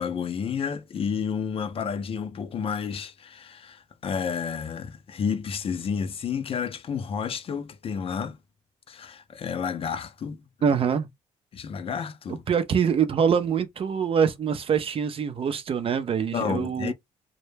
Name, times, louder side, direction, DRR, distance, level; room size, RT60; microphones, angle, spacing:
voice 1, 0.0-8.4 8.9-10.8 11.5-12.4 16.3-16.9, left 6 dB, 45° left, 0.5 m, -31 dB
voice 2, 10.6-11.1 12.5-16.9, right 7 dB, 45° right, 0.5 m, -24 dB
2.1 x 2.0 x 3.1 m
cardioid pair, 80°, 13 cm